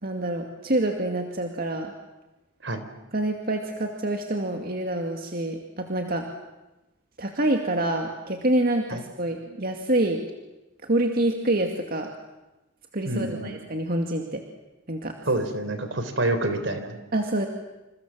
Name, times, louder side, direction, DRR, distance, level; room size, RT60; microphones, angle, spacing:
voice 1, 0.0-1.9 3.1-6.3 7.2-10.2 10.8-12.1 12.9-14.4 14.9-15.1 17.1-17.5, right 1 dB, 50° right, 3 dB, 2.2 m, -26 dB
voice 2, 13.0-13.5 15.3-17.0, right 2 dB, 70° right, 9 dB, 4.0 m, -27 dB
28.5 x 28.0 x 7.5 m, 1.0 s
head